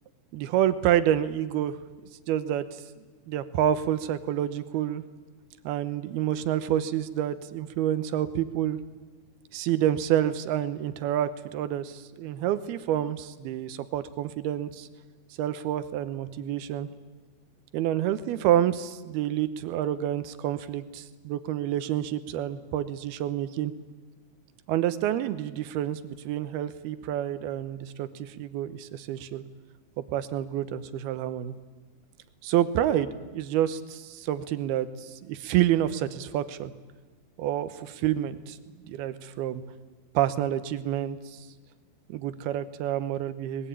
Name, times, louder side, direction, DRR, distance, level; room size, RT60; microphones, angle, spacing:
voice 1, 0.3-1.8 2.3-2.8 3.3-5.0 5.6-8.8 9.5-14.9 15.4-16.9 17.7-23.7 24.7-29.4 30.0-31.5 32.4-36.7 37.4-38.6 38.9-39.6 40.1-41.4 42.1-43.7, right 11 dB, 90° right, 13 dB, 3.0 m, -28 dB
23.5 x 20.5 x 9.0 m, 1.3 s
omnidirectional pair, 4.4 m